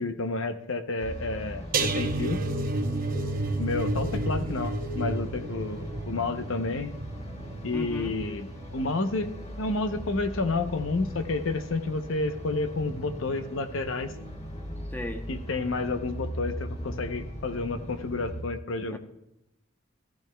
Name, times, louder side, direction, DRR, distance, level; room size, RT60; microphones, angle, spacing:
voice 1, 0.0-2.4 3.6-6.9 7.6-9.3 9.6-14.1 15.3-19.0, left 3 dB, 85° left, 9 dB, 0.8 m, -30 dB
sound 1, 1.0-18.4, equal, 35° left, 1.5 m, -39 dB
sound 2, 1.7-8.8 9.2-9.5 9.8-9.9, right 2 dB, 45° right, 0.8 m, -31 dB
voice 2, 7.7-8.2 14.9-15.3 18.9-19.0, equal, 10° left, 6 dB, 0.7 m, -36 dB
14.5 x 14.0 x 2.3 m, 0.83 s
head